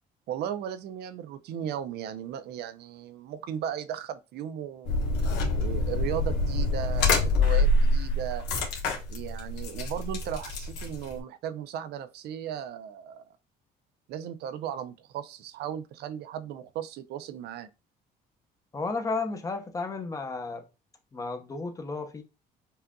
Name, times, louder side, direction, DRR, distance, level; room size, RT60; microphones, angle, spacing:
voice 1, 0.3-4.9 5.5-8.4 9.1-13.2 14.1-17.7, right 9 dB, 75° right, 0.5 m, -36 dB
sound 1, 4.8-11.2, left 2 dB, 90° left, 1.2 m, -26 dB
voice 2, 18.7-20.6 21.1-22.2, left 3 dB, 20° left, 0.8 m, -33 dB
5.5 x 2.5 x 2.3 m
cardioid pair, 110°, 17 cm